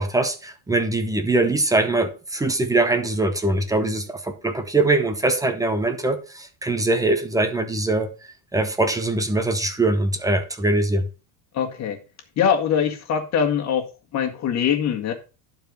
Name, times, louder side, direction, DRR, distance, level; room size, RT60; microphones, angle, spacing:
voice 1, 0.0-8.1 8.5-11.1, right 2 dB, 5° right, 0.7 m, -22 dB
voice 2, 11.5-12.0 12.4-13.9 14.1-15.1, left 8 dB, 35° left, 1.8 m, -22 dB
11.5 x 4.7 x 5.1 m
cardioid pair, 155°, 48 cm